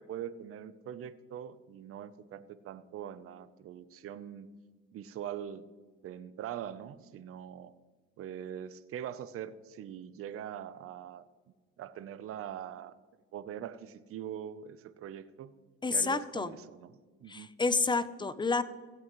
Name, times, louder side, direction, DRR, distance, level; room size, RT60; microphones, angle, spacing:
voice 1, 0.0-4.5 4.9-5.6 6.0-7.7 8.2-11.2 11.8-12.9 13.3-15.5 15.9-16.9 17.2-17.5, right 10 dB, 50° right, 14 dB, 0.7 m, -42 dB
voice 2, 15.8-16.5 17.3-18.6, left 4 dB, 15° left, 15 dB, 0.6 m, -29 dB
16.0 x 8.4 x 3.1 m, 1.4 s
supercardioid pair, 90°, 29 cm